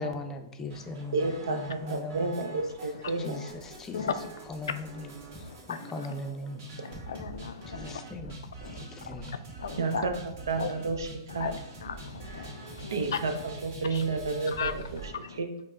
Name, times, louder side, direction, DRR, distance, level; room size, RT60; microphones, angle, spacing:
voice 1, 0.0-2.7 3.2-4.2 4.5-6.7 7.7-9.3, left 2 dB, 20° left, 5 dB, 0.4 m, -40 dB
sound 1, 0.7-15.1, right 2 dB, 50° right, 1.5 m, -45 dB
voice 2, 1.1-3.4 9.8-10.1 10.5-11.1 11.3-11.5 12.9-13.3 13.6-15.5, right 3 dB, 80° right, 6 dB, 0.6 m, -31 dB
voice 3, 3.9-4.3 5.4-5.9 6.8-8.0 8.6-9.1 9.6-10.0 10.6-10.7 11.3-13.2 13.9-14.0 14.5-15.4, left 6 dB, 80° left, 11 dB, 0.3 m, -36 dB
5.4 x 2.1 x 3.6 m, 0.80 s
hypercardioid pair, 125°, 2 cm